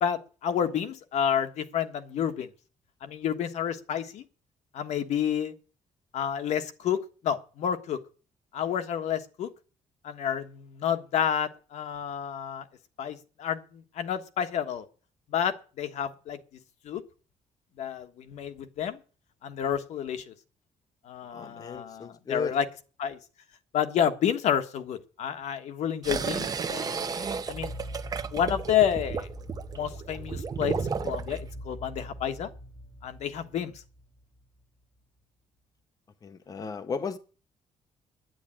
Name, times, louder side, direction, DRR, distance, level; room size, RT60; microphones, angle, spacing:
voice 1, 0.0-2.5 3.0-4.2 4.7-5.5 6.1-7.0 7.2-8.0 8.5-9.5 10.0-12.6 13.0-13.6 14.0-14.8 15.3-16.4 16.8-17.0 17.8-19.0 19.4-20.3 21.1-22.7 23.0-23.2 23.7-27.7 28.3-29.3 29.7-30.8 31.0-32.5 33.0-33.7, left 9 dB, 70° left, 1.4 m, -29 dB
voice 2, 21.3-22.6 36.2-37.2, left 5 dB, 30° left, 0.8 m, -35 dB
sound 1, 26.0-31.4, right 6 dB, 30° right, 0.9 m, -33 dB
sound 2, 27.1-34.5, equal, 10° left, 6.6 m, -42 dB
10.5 x 9.9 x 8.8 m
cardioid pair, 140°, 12 cm